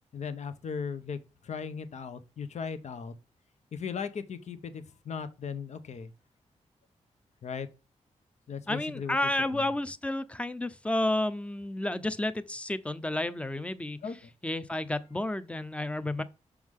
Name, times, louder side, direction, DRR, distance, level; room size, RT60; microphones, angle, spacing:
voice 1, 0.1-3.1 3.7-6.1 7.4-7.7 8.5-9.7 14.0-14.3, left 6 dB, 65° left, 0.8 m, -37 dB
voice 2, 8.7-14.0 14.4-16.2, left 1 dB, 10° left, 0.6 m, -31 dB
6.4 x 4.6 x 3.7 m
cardioid pair, 80°, 13 cm